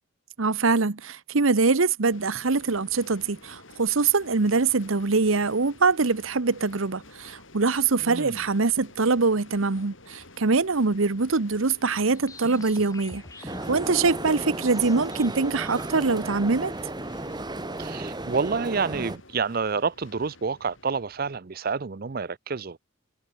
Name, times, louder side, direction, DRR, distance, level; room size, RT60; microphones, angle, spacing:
voice 1, 0.4-16.7, right 4 dB, 75° right, 1.0 m, -23 dB
sound 1, 2.1-21.4, left 2 dB, 65° left, 7.5 m, -51 dB
voice 2, 8.0-8.4 17.8-22.8, right 5 dB, 45° right, 0.6 m, -28 dB
sound 2, 12.1-16.1, left 1 dB, 15° left, 3.0 m, -43 dB
sound 3, 13.5-19.2, right 2 dB, 20° right, 1.3 m, -34 dB
head